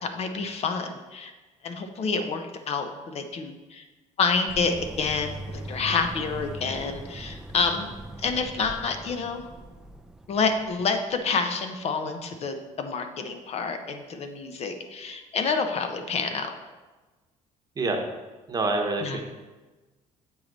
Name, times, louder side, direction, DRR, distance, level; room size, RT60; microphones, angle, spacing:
voice 1, 0.0-1.3 1.6-3.8 4.2-7.9 8.2-9.4 10.3-16.5 19.0-19.2, left 4 dB, 45° left, 6 dB, 0.7 m, -28 dB
sound 1, 4.5-11.2, right 1 dB, 5° right, 0.4 m, -40 dB
voice 2, 18.5-19.2, right 3 dB, 25° right, 2 dB, 0.9 m, -26 dB
7.2 x 4.7 x 3.9 m, 1.2 s
cardioid pair, 120°, 14 cm